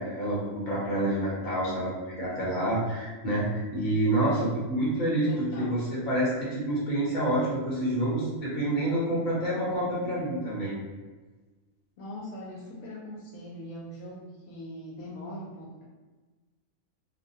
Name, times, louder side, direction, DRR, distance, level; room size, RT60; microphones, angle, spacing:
voice 1, 0.0-10.7, right 1 dB, 40° left, -7 dB, 0.9 m, -28 dB
voice 2, 5.3-5.8 12.0-15.8, left 1 dB, 80° left, -4 dB, 1.0 m, -41 dB
2.6 x 2.2 x 2.7 m, 1.3 s
omnidirectional pair, 1.4 m